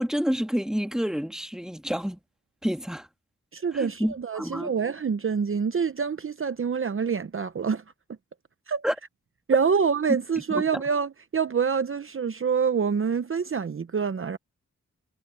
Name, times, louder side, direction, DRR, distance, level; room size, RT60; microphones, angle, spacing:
voice 1, 0.0-2.2 2.6-3.1 3.7-4.7 8.8-9.0 10.5-10.8, equal, ahead, 2.2 m, -28 dB
voice 2, 3.5-7.8 8.7-8.8 9.5-14.4, right 6 dB, 45° right, 0.8 m, -26 dB
cardioid pair, 70°, 30 cm